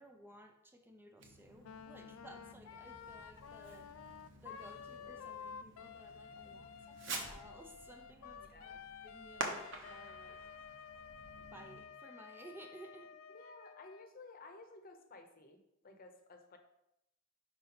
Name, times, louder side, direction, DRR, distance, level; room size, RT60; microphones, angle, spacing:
voice 1, 0.0-3.9 4.4-10.4 11.3-13.1, right 1 dB, 10° right, 4 dB, 0.5 m, -57 dB
Fireworks, 1.2-11.9, right 3 dB, 65° right, 0.9 m, -49 dB
Wind instrument woodwind instrument, 1.6-14.1, left 7 dB, 90° left, 0.4 m, -52 dB
voice 2, 6.4-6.8 8.4-8.8 13.3-15.6 15.8-16.6, left 3 dB, 45° left, 5 dB, 0.8 m, -55 dB
5.3 x 4.9 x 4.3 m, 0.83 s
head